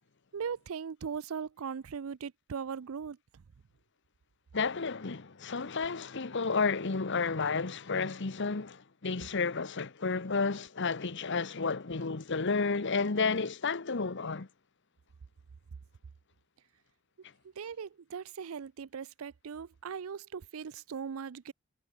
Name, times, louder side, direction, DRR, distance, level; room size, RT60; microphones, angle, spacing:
voice 1, 0.3-3.2 17.6-21.5, right 6 dB, 85° right, 0.5 m, -39 dB
voice 2, 4.5-14.5, left 4 dB, 60° left, 1.1 m, -31 dB
head